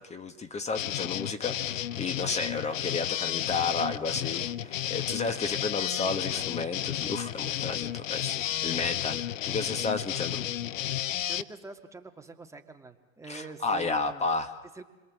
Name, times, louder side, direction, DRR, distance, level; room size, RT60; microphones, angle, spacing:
voice 1, 0.0-10.4 13.3-14.6, left 4 dB, 15° left, 8 dB, 1.5 m, -32 dB
sound 1, 0.7-11.4, left 12 dB, 80° left, 0.8 m, -32 dB
voice 2, 11.3-14.3 14.8-14.9, right 3 dB, 10° right, 4 dB, 1.9 m, -45 dB
28.5 x 22.5 x 7.6 m, 1.2 s
hypercardioid pair, 110°, 38 cm